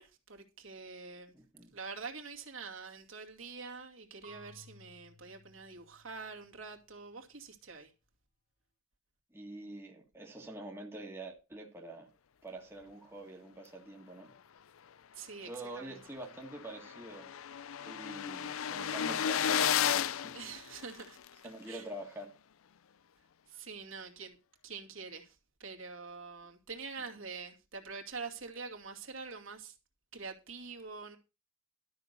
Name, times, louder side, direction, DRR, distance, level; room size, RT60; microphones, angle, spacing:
voice 1, 0.0-1.3 1.7-7.9 15.2-15.5 15.8-15.9 20.3-21.2 21.7-21.8 23.5-24.4 24.6-25.3 25.6-29.7 30.1-31.2, right 4 dB, 60° right, 2.4 m, -45 dB
voice 2, 1.3-1.7 9.3-12.1 12.4-14.3 15.4-17.3 17.8-20.3 21.4-22.3 27.0-27.1, right 1 dB, 10° right, 1.7 m, -46 dB
Marimba xylophone / Wood, 4.2-7.1, left 1 dB, 50° left, 2.5 m, -59 dB
sound 1, 15.7-15.8 16.1-16.2 16.4-21.3, left 9 dB, 70° left, 0.5 m, -33 dB
12.5 x 6.1 x 6.6 m
head